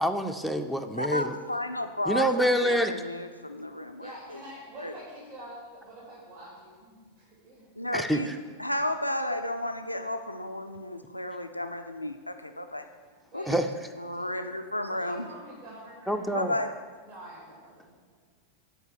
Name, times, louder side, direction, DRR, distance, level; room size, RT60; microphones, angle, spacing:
voice 1, 0.0-1.3 2.1-2.9 7.9-8.4 13.5-13.7 16.1-16.5, equal, ahead, 7 dB, 0.5 m, -26 dB
voice 2, 1.0-2.3 2.6-4.1 4.8-4.9 7.8-8.3 8.6-12.9 13.3-13.6 14.0-15.3 16.3-16.7, left 1 dB, 85° left, 7 dB, 0.4 m, -32 dB
voice 3, 4.0-8.2 13.3-13.8 14.1-14.3 14.9-16.6 17.0-18.2, equal, 50° right, -7 dB, 2.6 m, -47 dB
8.0 x 4.8 x 7.3 m, 1.5 s
figure-of-eight pair, 90°, 0 cm